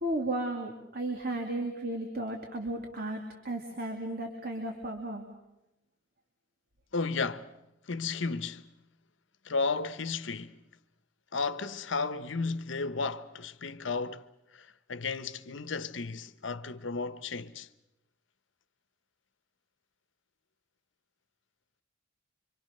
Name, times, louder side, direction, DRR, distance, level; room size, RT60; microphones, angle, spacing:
voice 1, 0.0-5.3, right 1 dB, 50° right, 2.6 m, -34 dB
voice 2, 6.9-7.5 7.9-8.7 9.4-10.6 11.3-14.2 14.5-17.7, left 4 dB, 70° left, 1.0 m, -33 dB
26.5 x 25.0 x 6.6 m
head